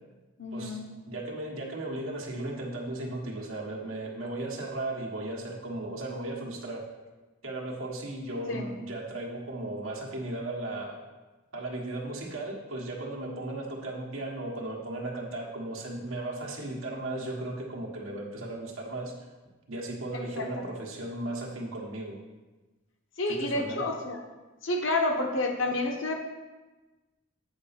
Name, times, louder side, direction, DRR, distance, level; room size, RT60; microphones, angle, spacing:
voice 1, 0.4-0.9 8.5-8.7 20.3-20.7 23.2-24.2 24.6-26.2, left 2 dB, 70° left, 3 dB, 1.0 m, -29 dB
voice 2, 1.1-6.9 7.4-11.0 11.5-19.3 19.7-22.2 23.3-23.9, right 2 dB, 90° right, -1 dB, 1.5 m, -36 dB
8.7 x 4.3 x 5.8 m, 1.2 s
head